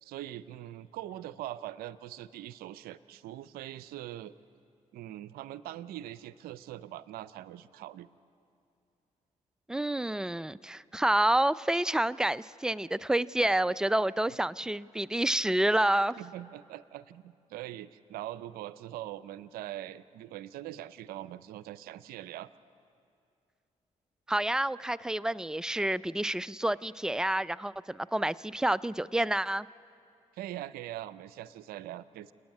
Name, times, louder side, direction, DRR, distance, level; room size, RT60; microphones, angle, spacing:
voice 1, 0.0-4.3 4.9-8.1 16.2-22.5 30.3-32.3, right 13 dB, 85° right, 16 dB, 0.5 m, -42 dB
voice 2, 9.7-16.2 24.3-29.7, right 1 dB, 5° right, 18 dB, 0.4 m, -28 dB
28.5 x 9.7 x 9.6 m, 2.5 s
hypercardioid pair, 45°, 15 cm